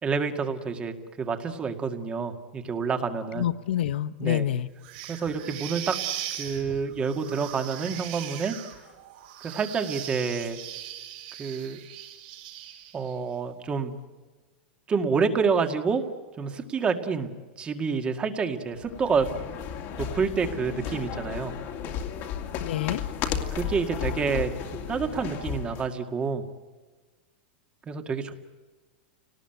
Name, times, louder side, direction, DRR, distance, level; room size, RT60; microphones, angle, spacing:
voice 1, 0.0-3.4 4.2-4.5 5.1-6.0 6.4-8.6 9.4-10.6 11.4-11.8 12.9-13.9 14.9-16.0 16.4-17.3 17.6-19.3 20.0-21.5 23.5-24.5 24.9-26.4 27.9-28.3, right 5 dB, 20° right, 7 dB, 2.0 m, -28 dB
voice 2, 3.4-4.7 22.6-23.0, left 11 dB, 80° left, 14 dB, 0.9 m, -27 dB
sound 1, 4.8-13.1, right 12 dB, 60° right, 5.4 m, -39 dB
sound 2, 18.7-25.9, left 8 dB, 40° left, 2.3 m, -34 dB
29.0 x 19.0 x 9.2 m, 1.3 s
supercardioid pair, 145°, 6 cm